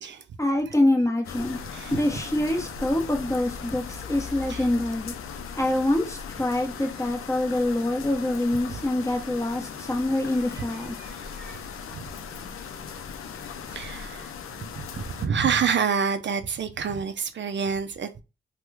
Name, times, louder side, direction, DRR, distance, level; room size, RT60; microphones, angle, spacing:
voice 1, 0.4-1.6 1.9-5.1 5.5-11.0, left 1 dB, 15° left, 1.0 m, -25 dB
sound 1, 1.2-15.3, left 6 dB, 90° left, 0.5 m, -38 dB
voice 2, 1.6-2.0 4.5-4.7 7.5-7.6 10.6-10.7 11.0-12.0 13.7-14.4 14.8-18.2, right 6 dB, 60° right, 0.4 m, -29 dB
3.0 x 2.2 x 3.3 m
cardioid pair, 55°, 21 cm